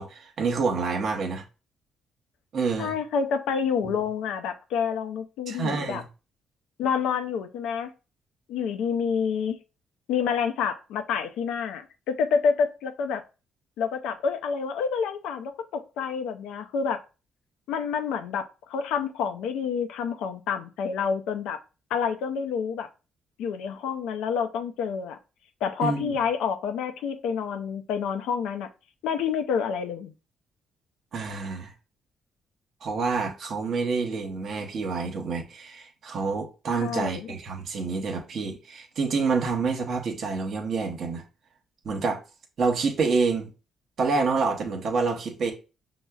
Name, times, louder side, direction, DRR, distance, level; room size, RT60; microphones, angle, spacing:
voice 1, 0.0-1.4 2.5-2.9 3.8-3.9 5.5-6.0 25.8-26.1 31.1-31.7 32.8-41.2 41.8-42.2 42.6-43.5 44.0-45.5, right 4 dB, 60° right, 0.8 m, -27 dB
voice 2, 2.8-6.0 6.8-7.9 8.5-9.6 10.1-13.2 13.8-17.0 17.7-21.6 21.9-22.9 23.4-25.2 25.6-28.7 29.0-30.1 36.8-37.3, left 6 dB, 90° left, 0.4 m, -28 dB
5.5 x 2.0 x 2.3 m
cardioid pair, 90°, 0 cm